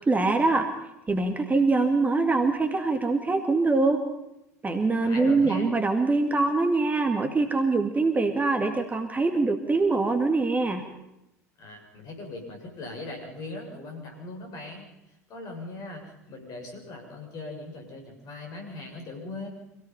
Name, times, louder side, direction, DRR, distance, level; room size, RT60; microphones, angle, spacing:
voice 1, 0.1-0.7 1.1-4.0 4.6-10.8, right 3 dB, 20° right, 5 dB, 2.3 m, -23 dB
voice 2, 5.0-5.8 11.6-14.9 15.3-19.5, left 2 dB, 45° left, 2 dB, 7.3 m, -39 dB
26.5 x 17.0 x 5.8 m, 0.86 s
figure-of-eight pair, 65°, 9 cm